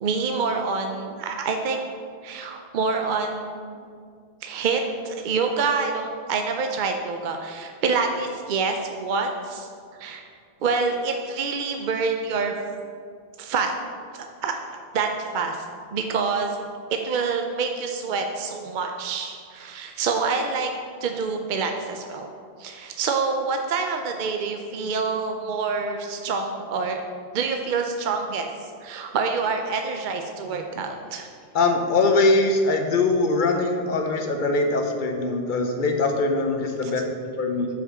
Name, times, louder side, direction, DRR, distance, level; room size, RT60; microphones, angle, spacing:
voice 1, 0.0-1.8 2.2-3.8 4.4-9.7 10.0-10.3 10.6-12.5 13.4-13.7 14.1-14.6 14.9-15.7 15.9-16.6 16.9-20.7 21.0-22.3 22.6-27.0 27.3-28.5 28.8-31.3 36.8-36.9, right 4 dB, 60° right, 4 dB, 0.6 m, -27 dB
voice 2, 31.5-37.7, left 3 dB, 55° left, 4 dB, 0.8 m, -22 dB
5.2 x 5.0 x 6.2 m, 2.2 s
omnidirectional pair, 1.1 m